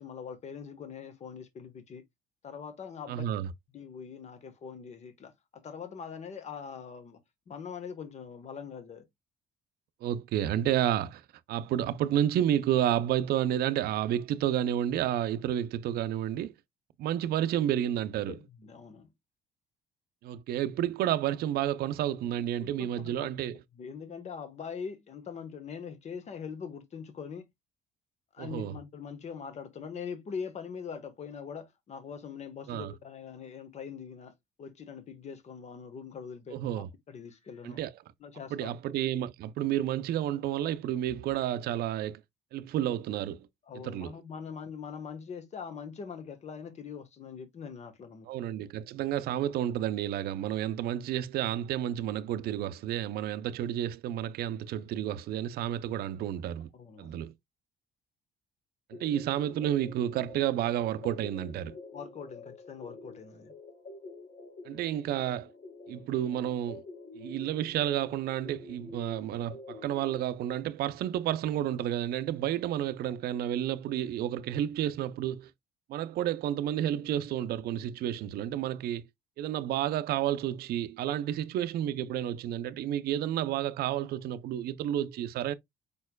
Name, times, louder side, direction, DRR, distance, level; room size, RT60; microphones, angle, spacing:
voice 1, 0.0-2.0 2.4-3.2 3.7-7.2 7.5-9.1 10.1-10.2 18.3-19.1 22.6-23.3 23.8-27.4 28.3-34.3 34.6-36.7 37.1-37.8 38.2-38.7 43.7-48.3 56.7-57.2 61.9-63.5, left 6 dB, 40° left, 1.2 m, -42 dB
voice 2, 3.1-3.5 10.0-11.2 11.5-16.5 17.0-18.4 20.2-23.6 28.4-28.8 32.7-32.9 36.5-36.9 37.6-37.9 38.5-42.2 42.5-43.5 43.8-44.1 48.3-56.7 57.0-57.3 59.0-61.7 64.6-65.5 65.9-66.8 67.1-75.5 75.9-79.1 79.4-85.5, right 11 dB, 65° right, 0.5 m, -31 dB
sound 1, 58.9-70.2, left 3 dB, 65° left, 2.8 m, -48 dB
5.3 x 4.3 x 2.2 m
cardioid pair, 110°, 17 cm